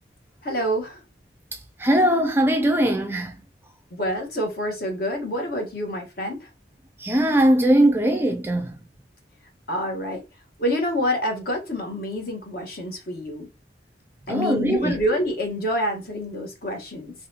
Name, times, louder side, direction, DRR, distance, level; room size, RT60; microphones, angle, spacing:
voice 1, 0.4-1.0 3.9-6.5 9.7-10.2 10.6-13.5 14.3-17.1, equal, 55° left, 1.3 m, -27 dB
voice 2, 1.5-3.4 7.0-8.8 14.3-15.0, right 1 dB, 10° right, 0.3 m, -20 dB
4.0 x 3.0 x 2.8 m
head